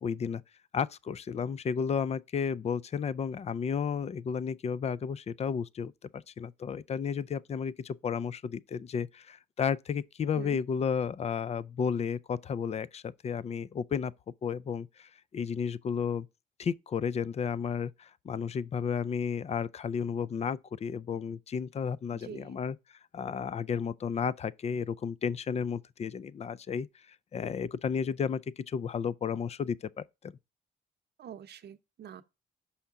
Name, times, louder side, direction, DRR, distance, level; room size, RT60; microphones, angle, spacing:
voice 1, 0.0-0.4 0.7-14.1 14.4-16.3 16.6-22.8 23.1-30.3, left 6 dB, 35° left, 0.4 m, -33 dB
voice 2, 22.1-22.6 31.2-32.2, right 9 dB, 55° right, 0.8 m, -45 dB
5.7 x 5.6 x 3.6 m
cardioid pair, 90°, 20 cm